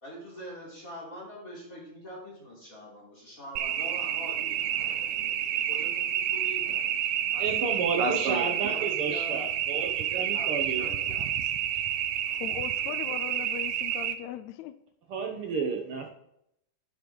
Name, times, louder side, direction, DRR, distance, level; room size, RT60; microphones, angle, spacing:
voice 1, 0.0-6.6 7.3-9.4 10.1-11.3, equal, 25° left, -5 dB, 4.0 m, -45 dB
sound 1, 3.6-14.1, right 10 dB, 90° right, 2.4 m, -29 dB
voice 2, 7.4-10.9 11.2-11.3 15.1-16.1, right 4 dB, 65° right, 4 dB, 1.4 m, -31 dB
voice 3, 12.3-14.8, left 11 dB, 80° left, 12 dB, 1.7 m, -39 dB
11.0 x 9.7 x 3.9 m, 0.77 s
omnidirectional pair, 3.7 m